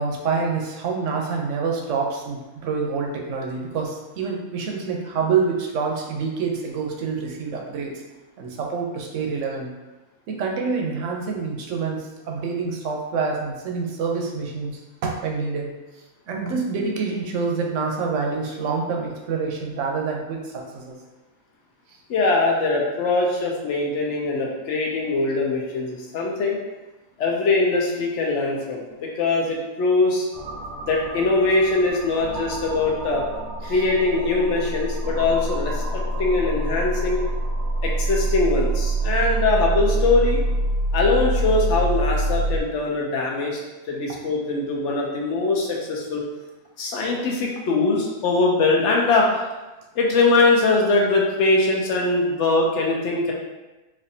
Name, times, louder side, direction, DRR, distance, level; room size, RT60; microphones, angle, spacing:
voice 1, 0.0-8.0 8.4-9.7 10.3-15.7 16.3-21.0 33.7-33.8, right 5 dB, 65° right, 1 dB, 0.9 m, -27 dB
voice 2, 22.1-26.6 27.2-30.3 30.8-33.2 33.6-37.2 37.8-40.4 40.9-43.6 43.9-46.2 46.8-49.3 49.9-53.3, left 3 dB, 60° left, -1 dB, 0.9 m, -22 dB
sound 1, 30.3-42.6, right 2 dB, 85° right, 1.1 m, -26 dB
4.2 x 2.5 x 2.7 m, 1.1 s
omnidirectional pair, 1.5 m